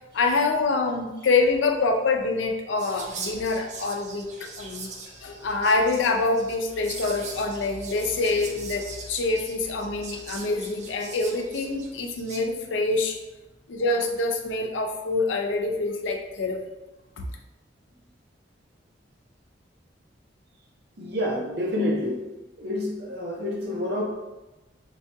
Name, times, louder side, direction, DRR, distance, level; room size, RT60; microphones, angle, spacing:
voice 1, 0.1-4.9 5.2-13.2 13.7-16.6 17.2-17.3, left 3 dB, 85° left, 3 dB, 0.5 m, -25 dB
Whispering, 2.8-12.4, right 4 dB, 40° right, 0.4 m, -41 dB
voice 2, 21.0-22.3 22.6-24.0, left 1 dB, 60° right, -1 dB, 0.8 m, -28 dB
4.6 x 2.3 x 2.7 m, 1.1 s
head